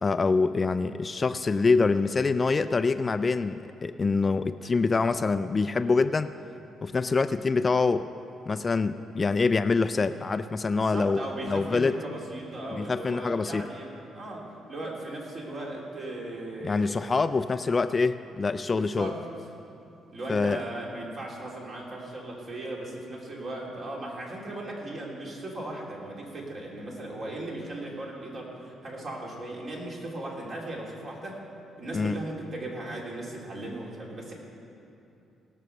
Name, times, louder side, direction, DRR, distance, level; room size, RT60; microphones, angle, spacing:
voice 1, 0.0-6.3 6.8-8.1 8.5-12.0 12.7-13.7 16.6-19.1 20.3-20.6 31.9-32.2, left 4 dB, 30° left, 12 dB, 0.4 m, -25 dB
voice 2, 10.7-17.0 18.7-19.2 20.1-31.4 31.8-34.3, right 1 dB, 50° right, -3 dB, 3.2 m, -37 dB
18.0 x 6.3 x 6.7 m, 2.7 s
cardioid pair, 90°, 0 cm